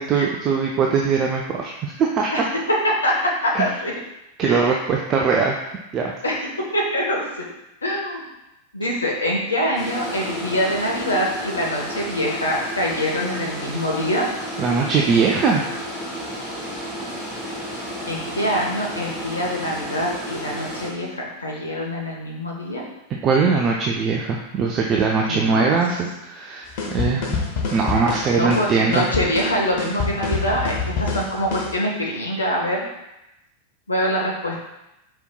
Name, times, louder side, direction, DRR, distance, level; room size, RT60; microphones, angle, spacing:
voice 1, 0.0-2.5 3.5-3.7 4.4-5.5 5.9-6.1 14.6-15.7 23.2-27.4 27.7-29.0, right 5 dB, 30° right, 0 dB, 0.5 m, -21 dB
voice 2, 2.8-3.9 4.4-4.7 6.2-6.4 6.7-7.5 7.8-8.3 8.7-14.3 18.1-21.1 21.4-22.9 25.2-25.8 28.3-32.9 33.9-34.7, equal, 75° left, -2 dB, 0.8 m, -24 dB
sound 1, 9.7-20.9, equal, 15° left, 1.5 m, -32 dB
sound 2, 26.8-31.8, left 4 dB, 45° left, 1.0 m, -26 dB
5.1 x 4.4 x 2.2 m, 0.90 s
figure-of-eight pair, 90°, 0 cm